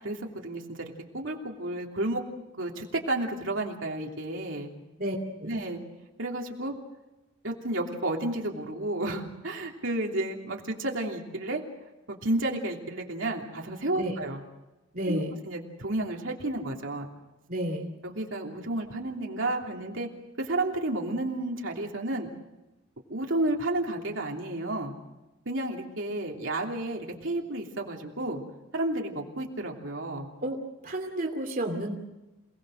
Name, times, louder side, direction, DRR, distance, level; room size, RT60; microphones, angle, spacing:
voice 1, 0.0-2.2 2.6-4.7 5.4-5.8 6.2-6.7 7.4-11.6 12.1-14.4 15.1-15.2 15.5-17.1 18.0-20.1 20.4-22.3 23.1-24.9 25.4-28.4 28.7-30.3, right 2 dB, 70° right, 0 dB, 3.1 m, -31 dB
voice 2, 5.0-5.5 14.0-14.2 14.9-15.4 17.5-17.9 30.4-30.6 30.8-31.9, right 1 dB, 45° right, 2 dB, 2.7 m, -31 dB
28.0 x 19.0 x 6.5 m, 1.0 s
head